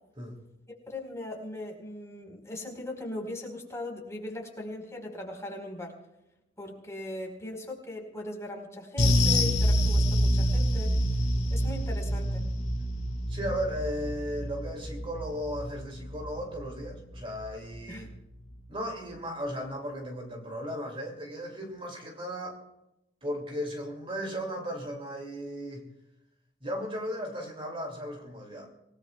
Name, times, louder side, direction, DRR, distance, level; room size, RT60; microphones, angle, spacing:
voice 1, 0.9-6.0 6.6-11.0 11.5-12.5 17.9-18.1, left 1 dB, 15° left, 0 dB, 4.8 m, -39 dB
sound 1, 9.0-17.6 17.9-18.1 18.5-18.6, equal, 45° left, 3.2 m, -27 dB
voice 2, 13.3-18.1 18.7-22.6 23.2-25.9 26.6-28.7, equal, 30° right, 1 dB, 3.0 m, -36 dB
27.5 x 19.0 x 2.5 m, 0.89 s
head